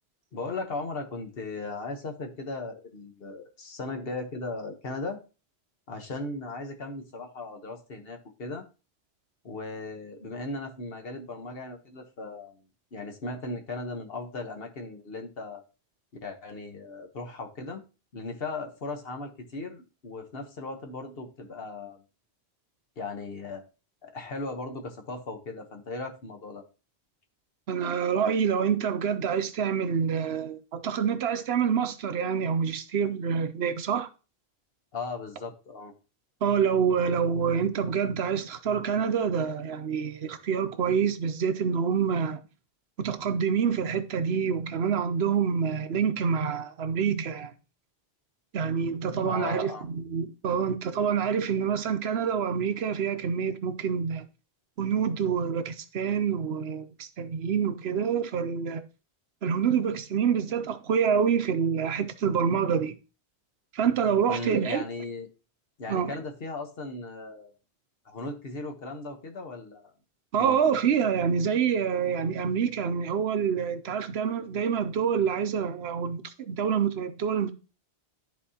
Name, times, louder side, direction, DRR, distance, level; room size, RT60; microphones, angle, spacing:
voice 1, 0.3-5.2 5.9-8.6 9.4-12.6 12.9-15.6 16.2-17.8 18.1-22.0 23.0-23.6 24.0-26.6 34.9-35.9 49.2-49.8 64.3-65.3 65.8-67.5 68.0-69.9 70.4-70.6, left 3 dB, 65° left, 1.3 m, -37 dB
voice 2, 27.7-34.1 36.4-42.4 43.0-47.5 48.5-54.3 54.8-58.8 59.4-62.9 63.7-64.8 65.9-66.2 70.3-77.5, right 7 dB, 75° right, 0.9 m, -27 dB
12.5 x 4.2 x 2.8 m
omnidirectional pair, 1.1 m